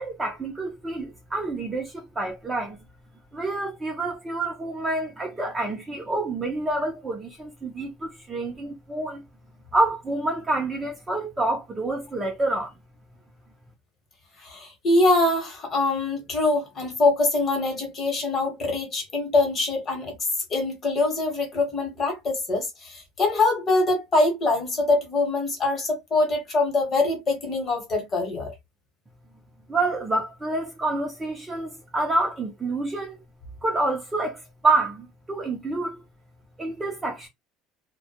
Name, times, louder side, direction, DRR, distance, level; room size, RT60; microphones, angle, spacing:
voice 1, 0.0-2.8 3.3-9.2 9.7-12.7 29.7-33.2 33.6-36.0 36.6-37.3, right 2 dB, 15° right, 0.5 m, -27 dB
voice 2, 14.4-20.2 20.5-28.5, left 2 dB, 30° left, 1.0 m, -24 dB
2.2 x 2.1 x 2.7 m
cardioid pair, 155°, 0 cm